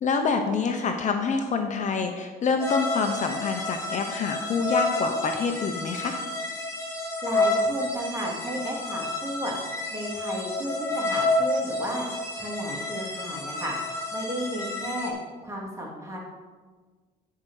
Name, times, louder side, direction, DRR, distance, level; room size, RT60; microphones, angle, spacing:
voice 1, 0.0-6.2, left 5 dB, 45° left, 4 dB, 0.9 m, -26 dB
sound 1, 2.6-15.1, left 2 dB, 15° left, 2.5 m, -30 dB
voice 2, 7.2-9.5 9.9-12.1 12.4-13.7 14.1-15.1 15.4-16.2, equal, 15° right, -3 dB, 2.9 m, -33 dB
10.5 x 4.9 x 6.4 m, 1.4 s
cardioid pair, 110°, 17 cm